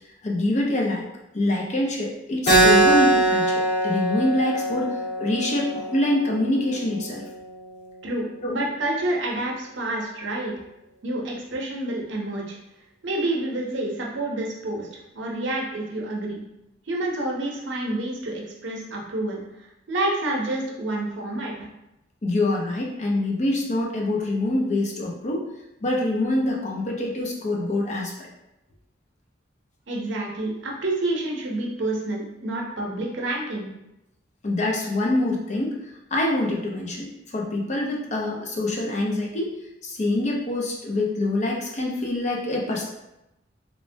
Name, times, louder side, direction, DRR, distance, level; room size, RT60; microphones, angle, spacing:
voice 1, 0.2-1.1 1.3-7.2 8.4-8.5 22.2-25.5 25.8-28.3 34.4-35.8 36.1-39.5 39.8-42.9, left 1 dB, 40° left, -2 dB, 0.5 m, -25 dB
Keyboard (musical), 2.5-7.6, right 2 dB, 60° left, 1.2 m, -22 dB
voice 2, 8.0-10.5 11.0-12.6 13.0-14.9 15.1-16.4 16.9-19.4 19.9-21.7 29.9-33.7, right 1 dB, 75° right, -2 dB, 0.6 m, -28 dB
3.1 x 2.1 x 2.6 m, 0.88 s
head